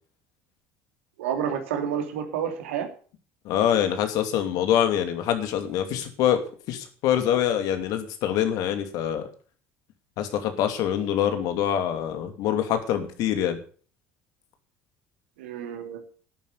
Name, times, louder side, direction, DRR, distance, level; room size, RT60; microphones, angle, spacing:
voice 1, 1.2-2.9 15.4-16.2, right 8 dB, 80° right, 6 dB, 2.8 m, -30 dB
voice 2, 3.4-9.2 10.2-13.6, left 10 dB, 65° left, 8 dB, 2.7 m, -25 dB
11.5 x 9.7 x 6.8 m, 0.42 s
hypercardioid pair, 70°, 7 cm